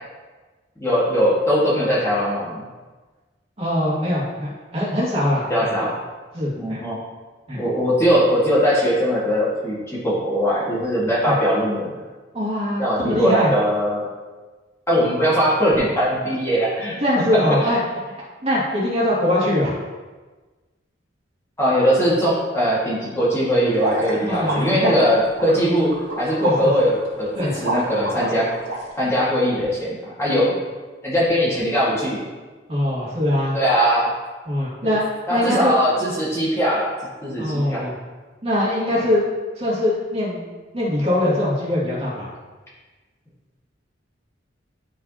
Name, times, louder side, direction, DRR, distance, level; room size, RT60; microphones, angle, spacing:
voice 1, 0.8-2.6 5.5-6.0 6.6-7.0 7.5-12.0 12.8-14.1 14.9-17.0 17.6-17.7 21.6-25.9 26.2-28.5 29.0-30.6 31.0-32.2 33.5-34.1 34.8-34.9 35.3-36.9 37.2-37.8 38.9-39.1, equal, 15° left, -8 dB, 1.9 m, -20 dB
voice 2, 3.6-5.7 6.3-6.8 7.5-7.6 11.2-11.3 12.3-13.5 17.0-17.8 18.4-19.8 24.1-24.9 26.4-26.7 27.4-27.5 32.7-33.6 34.5-35.0 35.3-35.8 37.4-38.0 38.4-39.3 39.6-40.4 40.7-42.3, left 1 dB, 35° right, -7 dB, 2.2 m, -22 dB
sound 1, 23.7-28.8, right 1 dB, 65° right, 2.4 m, -27 dB
11.5 x 4.9 x 2.9 m, 1.3 s
head